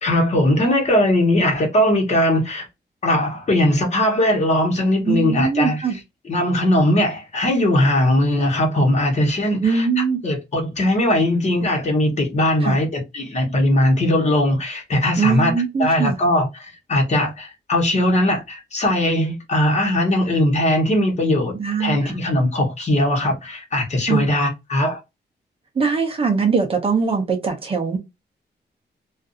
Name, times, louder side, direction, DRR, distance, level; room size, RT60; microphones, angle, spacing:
voice 1, 0.0-2.7 3.0-15.5 15.8-21.5 21.8-25.0, left 1 dB, 40° left, 1.1 m, -19 dB
voice 2, 5.1-6.0 9.6-10.2 12.6-12.8 15.2-16.2 21.6-22.2 24.1-24.3 25.8-28.0, right 5 dB, 35° right, 0.6 m, -21 dB
2.5 x 2.4 x 2.5 m
wide cardioid pair, 180°, 18 cm